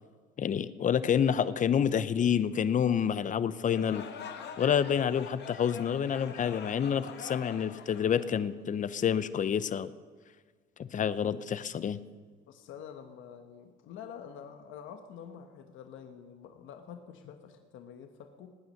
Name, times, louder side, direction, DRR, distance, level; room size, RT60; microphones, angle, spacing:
voice 1, 0.4-4.1 4.6-9.9 10.8-12.0, left 8 dB, 40° left, 15 dB, 0.7 m, -28 dB
sound 1, 3.6-8.8, left 7 dB, 55° left, 1.7 m, -45 dB
voice 2, 12.5-18.5, left 8 dB, 75° left, 6 dB, 1.2 m, -47 dB
18.5 x 9.3 x 6.5 m, 1.5 s
cardioid pair, 95°, 21 cm